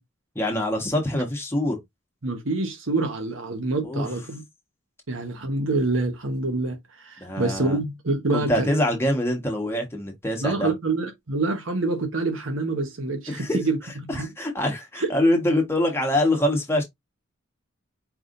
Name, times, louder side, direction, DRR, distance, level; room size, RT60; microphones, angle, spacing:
voice 1, 0.3-1.8 3.8-4.1 7.2-7.8 8.3-10.7 13.3-13.6 14.1-16.8, left 1 dB, 10° left, 1.4 m, -24 dB
voice 2, 2.2-4.4 5.1-8.7 10.4-13.8 14.0-14.3 15.0-15.1, right 2 dB, 75° right, 1.2 m, -26 dB
4.8 x 3.4 x 2.6 m
head